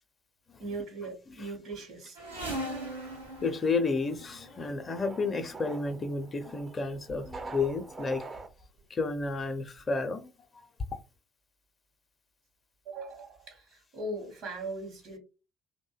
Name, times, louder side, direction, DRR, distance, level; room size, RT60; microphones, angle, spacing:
voice 1, 0.6-2.2 12.8-15.2, right 2 dB, 55° right, 0.9 m, -39 dB
sound 1, 2.1-4.6 5.6-5.8 6.6-6.7 6.9-7.8 8.1-8.7 9.4-9.5 9.8-9.9, right 1 dB, 85° right, 0.6 m, -40 dB
sound 2, 2.3-8.5, right 3 dB, 25° right, 0.4 m, -46 dB
voice 2, 3.4-8.2 8.9-10.3, left 3 dB, 30° left, 0.5 m, -31 dB
2.6 x 2.1 x 2.3 m
figure-of-eight pair, 50°, 0 cm